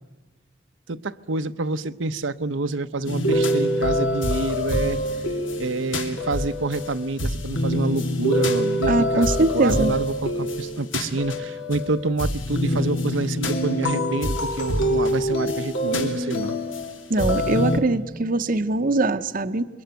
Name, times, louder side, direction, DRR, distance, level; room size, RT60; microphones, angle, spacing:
voice 1, 0.9-5.0 5.6-16.6, right 3 dB, 80° right, 11 dB, 0.9 m, -28 dB
sound 1, 3.1-17.8, equal, 80° left, 2.7 m, -25 dB
voice 2, 8.9-9.9 17.1-19.7, right 2 dB, 45° right, 10 dB, 0.8 m, -22 dB
27.0 x 22.5 x 9.2 m, 1.2 s
head